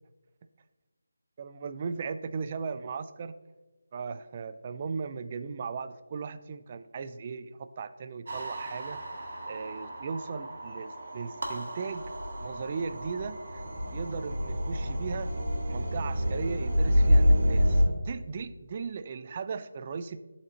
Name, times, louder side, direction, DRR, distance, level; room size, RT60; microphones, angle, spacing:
voice 1, 1.4-3.4 3.9-9.0 9.5-12.1 12.4-13.6 13.9-15.3 15.7-20.2, right 5 dB, 30° right, 11 dB, 0.3 m, -37 dB
sound 1, 8.3-17.8, equal, 55° right, 1.6 m, -28 dB
11.5 x 4.3 x 2.9 m, 1.2 s
figure-of-eight pair, 165°, 0 cm